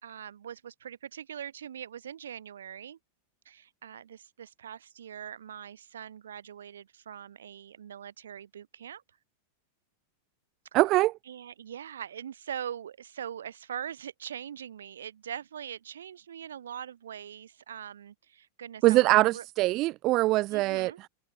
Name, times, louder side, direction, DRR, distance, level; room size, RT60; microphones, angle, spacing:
voice 1, 0.0-3.0 3.5-9.0 11.3-19.4 20.5-21.0, right 9 dB, 65° right, 3.8 m, -42 dB
voice 2, 10.7-11.2 18.8-20.9, right 19 dB, 40° right, 0.3 m, -23 dB
figure-of-eight pair, 90°, 0 cm